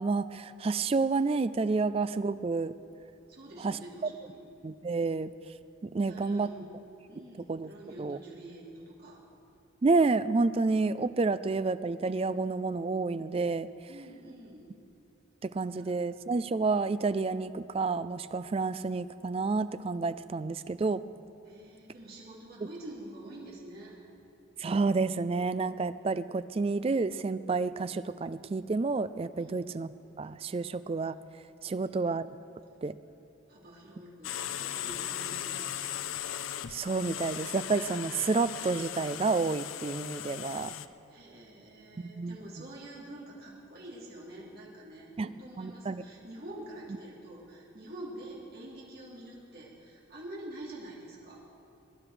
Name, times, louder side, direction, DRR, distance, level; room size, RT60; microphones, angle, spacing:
voice 1, 0.0-2.7 3.6-3.8 4.6-5.3 5.8-6.5 7.5-7.7 8.0-8.2 9.8-13.7 15.4-21.0 24.6-29.9 30.2-31.2 31.6-32.3 32.8-32.9 36.7-40.7 42.0-42.4 45.2-45.3 45.6-46.0, right 3 dB, 30° right, 14 dB, 0.3 m, -29 dB
voice 2, 3.3-4.5 6.0-6.7 7.1-9.2 13.9-14.7 15.7-15.9 21.4-24.0 29.4-29.5 31.7-32.2 33.5-35.9 41.1-51.4, right 1 dB, 50° right, -5 dB, 3.0 m, -47 dB
sound 1, 34.2-40.9, left 10 dB, 80° left, 0.5 m, -38 dB
21.5 x 10.5 x 5.0 m, 2.8 s
head